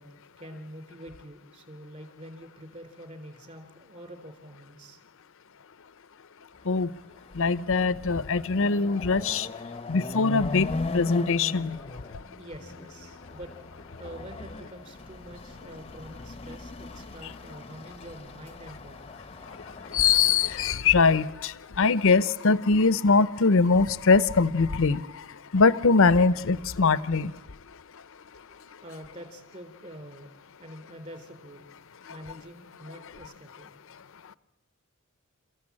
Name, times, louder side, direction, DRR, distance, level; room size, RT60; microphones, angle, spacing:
voice 1, 0.0-5.0 12.4-13.5 13.8-19.1 28.3-30.3 30.6-31.7 32.1-33.7, equal, 35° right, 6 dB, 3.8 m, -46 dB
Chatter / Car passing by / Motorcycle, 6.8-6.9 7.2-20.8, left 3 dB, 25° left, 0.8 m, -39 dB
voice 2, 7.4-9.5 9.9-10.7 10.9-11.8 19.9-21.5 21.8-25.0 25.5-27.3, left 4 dB, 65° left, 16 dB, 0.7 m, -22 dB
29.5 x 15.0 x 8.7 m, 1.1 s
head